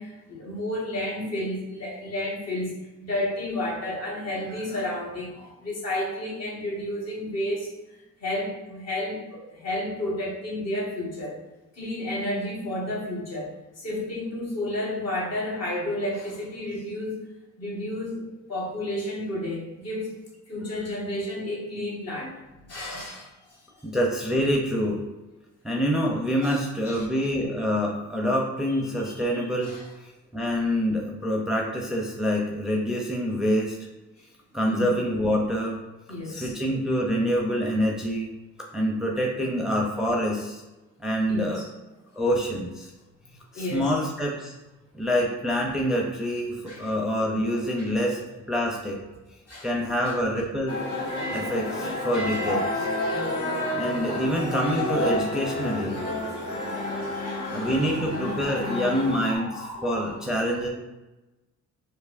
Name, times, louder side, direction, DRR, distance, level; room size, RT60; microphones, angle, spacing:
voice 1, 0.0-7.7 8.2-11.4 11.7-17.2 17.6-20.1 20.5-22.4 22.6-23.6 26.4-27.1 29.0-29.9 34.6-34.9 36.1-36.5 39.4-39.7 41.3-41.7 43.5-44.0 46.7-46.9 49.5-49.7 50.1-50.2 52.3-54.1 56.2-60.6, left 1 dB, 55° left, -4 dB, 1.4 m, -32 dB
voice 2, 23.8-25.0 25.6-29.7 30.0-33.8 34.5-35.8 36.3-38.3 38.7-40.6 41.0-41.6 42.1-42.9 43.5-44.5 44.9-48.2 48.5-49.0 49.6-50.8 51.3-52.6 53.8-56.0 57.5-59.5 59.8-60.7, equal, ahead, -1 dB, 0.6 m, -26 dB
sound 1, 50.7-59.3, left 1 dB, 75° left, 1.3 m, -30 dB
4.6 x 2.6 x 2.5 m, 1.1 s
cardioid pair, 90°, 30 cm